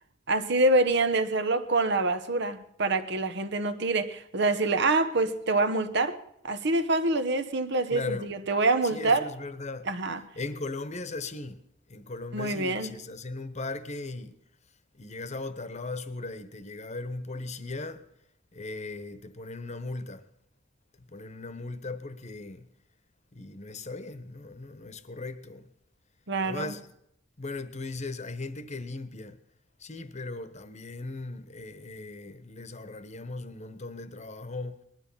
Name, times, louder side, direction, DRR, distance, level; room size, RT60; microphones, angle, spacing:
voice 1, 0.3-6.2 6.4-9.2 9.9-10.2 12.3-12.9 26.3-26.7, right 2 dB, 65° right, 1.1 m, -26 dB
voice 2, 7.9-8.3 8.8-9.9 10.3-11.6 11.9-14.4 14.9-18.1 18.5-20.3 21.0-22.7 23.3-25.7 26.4-26.9 27.4-29.4 29.8-34.8, left 3 dB, 35° left, 1.1 m, -38 dB
20.0 x 12.0 x 5.7 m
head